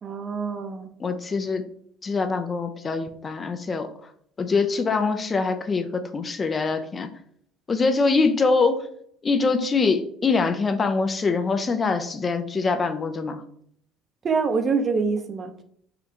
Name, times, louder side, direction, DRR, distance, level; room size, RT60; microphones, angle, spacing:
voice 1, 0.0-0.9 14.2-15.5, right 5 dB, 40° right, 7 dB, 0.6 m, -25 dB
voice 2, 1.0-1.6 2.0-3.9 4.4-7.1 7.7-8.9 9.2-13.4, left 4 dB, 30° left, 7 dB, 0.5 m, -24 dB
4.4 x 2.4 x 3.8 m, 0.65 s
hypercardioid pair, 65°, 0 cm